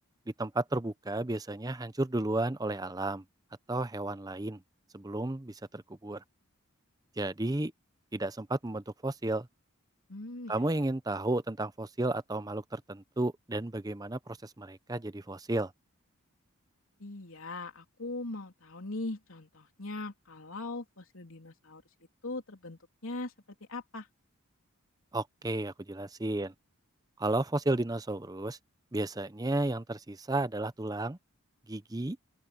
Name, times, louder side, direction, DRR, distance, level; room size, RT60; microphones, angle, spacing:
voice 1, 0.4-3.2 3.7-4.6 4.9-6.2 7.2-7.7 8.1-9.5 10.5-15.7 25.1-26.5 27.2-28.6 28.9-31.2 31.7-32.2, right 2 dB, 15° right, 0.6 m, -33 dB
voice 2, 10.1-10.8 17.0-21.8 22.2-23.3 23.7-24.1, left 2 dB, 70° left, 3.3 m, -40 dB
open air
head